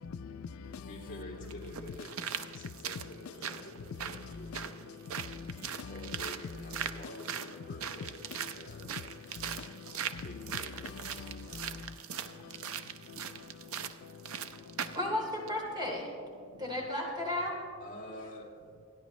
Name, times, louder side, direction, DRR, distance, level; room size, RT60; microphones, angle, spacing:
voice 1, 0.1-0.9 4.2-4.4 5.2-5.5 5.8-6.2 9.4-9.8 11.1-11.8 12.1-12.5 13.1-13.2 14.0-14.1, left 5 dB, 80° left, 0.4 m, -44 dB
sound 1, 0.6-0.7 1.5-15.1 15.5-15.6, right 8 dB, 85° right, 0.6 m, -40 dB
voice 2, 0.8-2.2 2.5-5.0 5.9-9.1 10.2-11.3 17.8-18.5, left 1 dB, 40° left, 2.8 m, -48 dB
voice 3, 14.9-16.1 16.6-17.5, left 1 dB, 20° right, 3.2 m, -33 dB
28.5 x 10.5 x 3.1 m
head